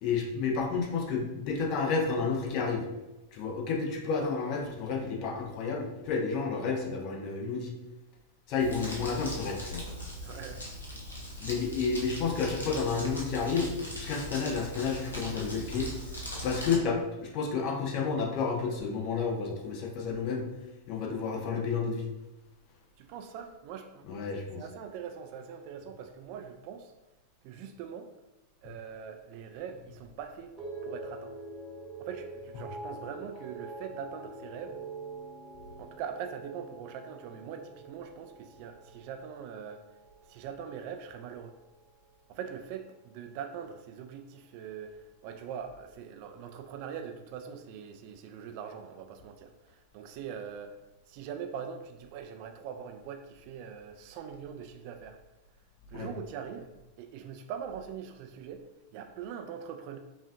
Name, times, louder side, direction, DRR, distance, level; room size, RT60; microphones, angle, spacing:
voice 1, 0.0-2.8 3.3-7.7 8.5-9.9 11.4-15.9 16.4-20.4 20.9-22.0 24.1-24.6 55.9-56.1, left 5 dB, 40° left, 1 dB, 0.7 m, -31 dB
Crumpling crinkling, 8.6-16.8, equal, 75° left, 0.8 m, -40 dB
voice 2, 10.2-10.6 23.0-24.3 24.6-26.9 27.4-28.1 28.6-30.6 30.8-31.3 32.0-34.8 35.8-39.8 40.3-41.6 42.3-50.8 51.1-55.2 55.9-56.7 57.0-60.0, right 7 dB, 45° right, 6 dB, 0.4 m, -42 dB
sound 1, 30.6-40.9 41.2-41.8, right 2 dB, 20° right, 0.9 m, -45 dB
5.4 x 2.4 x 2.5 m, 0.99 s
figure-of-eight pair, 90°, 0 cm